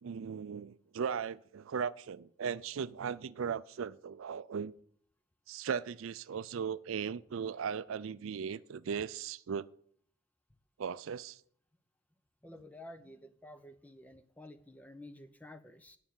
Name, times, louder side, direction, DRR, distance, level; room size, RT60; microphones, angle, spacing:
voice 1, 0.0-4.7 5.5-9.7 10.8-11.4, right 6 dB, 75° right, 0.4 m, -37 dB
voice 2, 12.4-16.0, left 1 dB, 5° left, 0.6 m, -51 dB
9.5 x 6.8 x 8.8 m
head